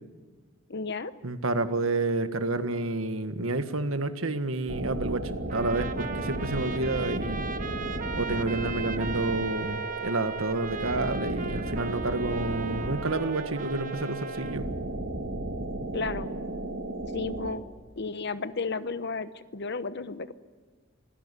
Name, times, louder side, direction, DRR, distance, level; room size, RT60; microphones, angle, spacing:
voice 1, 0.7-1.1 15.9-16.3 17.1-17.6 18.0-20.3, left 4 dB, 55° left, 13 dB, 1.0 m, -33 dB
voice 2, 1.2-7.4 8.1-14.7, right 2 dB, 85° right, 9 dB, 1.7 m, -29 dB
sound 1, 4.7-17.5, right 2 dB, 60° right, 2.4 m, -34 dB
Trumpet, 5.5-14.6, right 5 dB, 40° right, 1.2 m, -38 dB
25.0 x 16.5 x 9.9 m, 1.4 s
head